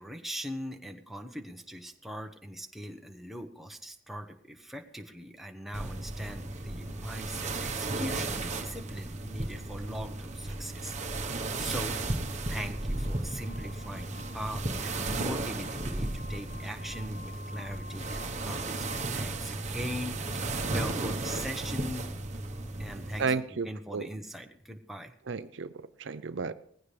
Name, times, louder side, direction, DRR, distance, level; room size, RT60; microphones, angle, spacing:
voice 1, 0.0-10.9 11.2-12.0 12.5-22.1 22.8-25.1, equal, ahead, 3 dB, 1.0 m, -40 dB
sound 1, 4.9-5.4 7.7-7.8 8.7-19.1, left 3 dB, 85° left, 4.6 m, -51 dB
sound 2, 5.7-23.3, right 2 dB, 35° right, 1.2 m, -34 dB
voice 2, 23.2-24.0 25.3-25.7 26.0-26.5, right 4 dB, 65° right, 13 dB, 0.5 m, -32 dB
19.0 x 15.5 x 3.4 m, 0.65 s
head